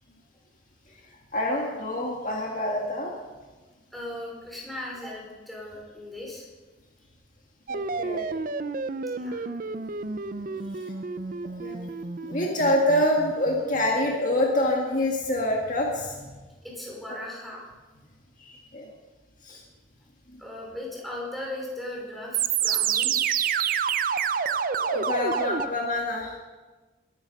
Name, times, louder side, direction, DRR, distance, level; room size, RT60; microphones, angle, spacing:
voice 1, 1.3-3.1 7.7-8.3 11.6-11.8 12.2-16.3 18.4-18.9 19.4-19.6 20.3-20.4 24.8-26.4, left 1 dB, 45° left, -1 dB, 1.8 m, -26 dB
voice 2, 3.9-6.5 9.1-9.5 10.6-10.9 16.6-17.6 19.5-19.6 20.4-23.1, left 1 dB, ahead, -4 dB, 4.7 m, -38 dB
sound 1, 7.7-14.1 22.3-25.7, right 6 dB, 50° right, 0.6 m, -29 dB
21.0 x 10.5 x 5.3 m, 1.3 s
head